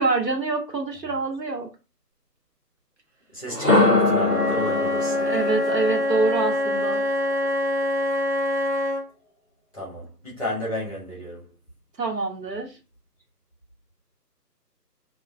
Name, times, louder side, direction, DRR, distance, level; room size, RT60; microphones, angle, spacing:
voice 1, 0.0-1.7 5.2-7.0 12.0-12.7, right 3 dB, 80° right, 1.0 m, -25 dB
voice 2, 3.3-5.3 9.7-11.5, left 1 dB, 20° left, 0.8 m, -33 dB
sound 1, 3.5-7.4, left 2 dB, 20° right, 1.0 m, -23 dB
Wind instrument woodwind instrument, 4.2-9.0, left 1 dB, 45° right, 0.7 m, -25 dB
3.1 x 2.3 x 2.5 m
figure-of-eight pair, 155°, 50 cm